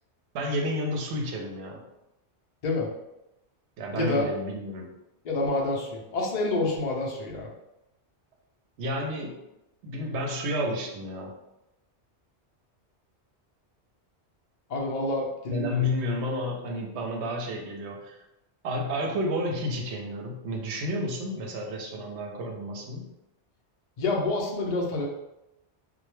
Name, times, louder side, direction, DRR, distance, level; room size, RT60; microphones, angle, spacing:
voice 1, 0.3-1.9 3.8-4.9 8.8-9.4 9.8-11.4 15.5-18.2 18.6-23.1, left 1 dB, 75° right, 1 dB, 0.8 m, -31 dB
voice 2, 3.9-4.3 5.2-7.5 14.7-15.8 24.0-25.1, left 2 dB, 55° left, -1 dB, 0.5 m, -28 dB
2.2 x 2.1 x 3.0 m, 0.90 s
omnidirectional pair, 1.2 m